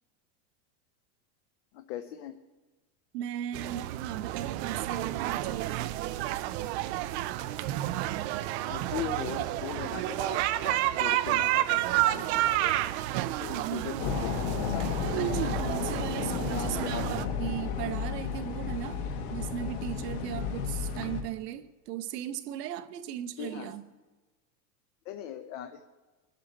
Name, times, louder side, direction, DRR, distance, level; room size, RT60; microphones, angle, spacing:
voice 1, 1.7-2.4 8.7-12.9 13.4-15.0 16.5-17.0 23.4-23.7 25.1-25.8, left 10 dB, 50° left, 0.7 m, -39 dB
voice 2, 3.1-6.0 13.4-14.1 15.1-23.9, right 11 dB, 80° right, 1.1 m, -37 dB
sound 1, 3.5-17.2, right 14 dB, 45° right, 0.5 m, -30 dB
sound 2, 14.0-21.2, left 6 dB, 65° left, 1.5 m, -33 dB
21.5 x 7.9 x 4.0 m
supercardioid pair, 160°, 48 cm